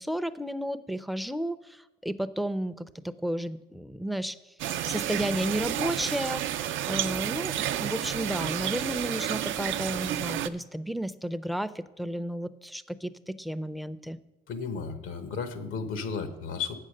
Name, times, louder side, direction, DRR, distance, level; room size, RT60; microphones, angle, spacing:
voice 1, 0.0-4.4 4.9-6.4 6.9-14.2, right 1 dB, ahead, 15 dB, 0.4 m, -32 dB
sound 1, 4.6-10.5, right 11 dB, 75° right, 0.5 m, -31 dB
voice 2, 14.5-16.8, left 5 dB, 90° left, 9 dB, 1.1 m, -34 dB
8.3 x 6.6 x 6.4 m, 1.0 s
cardioid pair, 90°, 20 cm